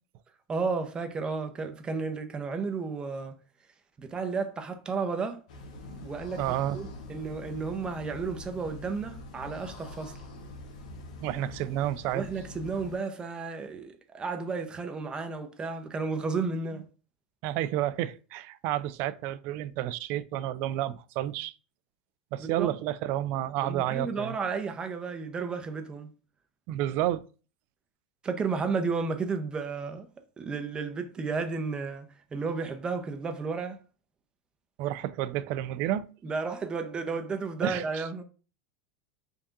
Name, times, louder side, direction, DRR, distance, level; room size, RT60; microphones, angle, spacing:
voice 1, 0.5-3.3 4.0-5.4 6.0-10.1 12.1-16.9 22.4-22.7 23.6-26.1 28.2-30.1 30.4-33.8 36.2-38.2, right 4 dB, 20° right, 0.7 m, -33 dB
sound 1, 5.5-13.0, left 2 dB, 80° left, 0.8 m, -44 dB
voice 2, 6.4-6.8 11.2-12.2 17.4-21.5 22.3-24.4 26.7-27.2 34.8-36.1 37.6-38.0, right 13 dB, 55° right, 0.3 m, -30 dB
3.5 x 2.6 x 3.6 m
supercardioid pair, 110°, 4 cm